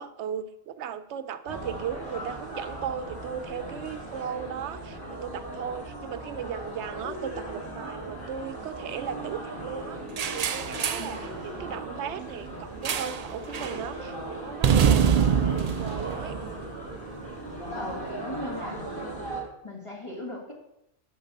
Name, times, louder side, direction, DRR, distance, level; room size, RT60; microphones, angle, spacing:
voice 1, 0.0-10.0 10.3-15.1 15.5-16.4, right 8 dB, 85° right, 12 dB, 0.9 m, -37 dB
sound 1, 1.5-19.4, right 1 dB, 50° left, 3.1 m, -38 dB
sound 2, 10.2-11.2 12.8-13.3 13.5-13.8 14.6-17.0, right 7 dB, 55° right, 0.4 m, -24 dB
voice 2, 11.0-11.3 17.8-18.8 19.6-20.5, left 1 dB, 25° left, -1 dB, 1.8 m, -38 dB
11.5 x 4.1 x 5.3 m, 0.84 s
omnidirectional pair, 1.1 m